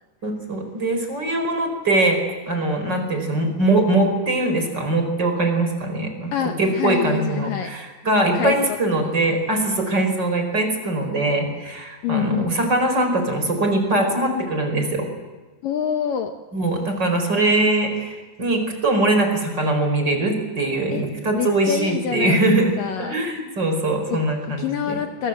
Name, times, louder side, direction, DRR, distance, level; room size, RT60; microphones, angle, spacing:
voice 1, 0.2-2.2 2.5-6.3 6.6-15.1 16.5-25.0, right 2 dB, 25° right, 5 dB, 4.9 m, -22 dB
voice 2, 6.3-7.7 8.2-8.5 9.0-9.4 12.0-12.6 15.6-16.3 20.9-21.0 21.3-23.1 24.1-24.2 24.6-25.3, left 9 dB, 65° left, 5 dB, 2.5 m, -26 dB
29.0 x 23.0 x 8.0 m, 1.3 s
omnidirectional pair, 4.7 m